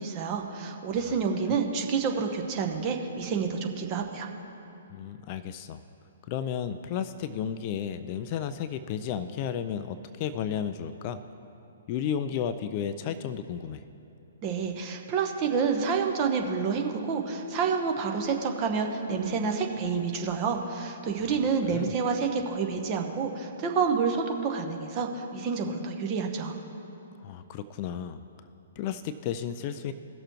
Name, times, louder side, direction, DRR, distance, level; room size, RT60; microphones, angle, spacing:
voice 1, 0.0-4.3 14.4-26.5, right 5 dB, 30° right, 3 dB, 1.0 m, -28 dB
voice 2, 4.9-5.8 6.3-11.2 11.9-13.8 21.2-21.4 21.7-21.9 27.2-28.2 28.8-29.9, left 8 dB, 35° left, 11 dB, 0.3 m, -33 dB
17.5 x 6.6 x 3.1 m, 2.9 s
figure-of-eight pair, 120°, 0 cm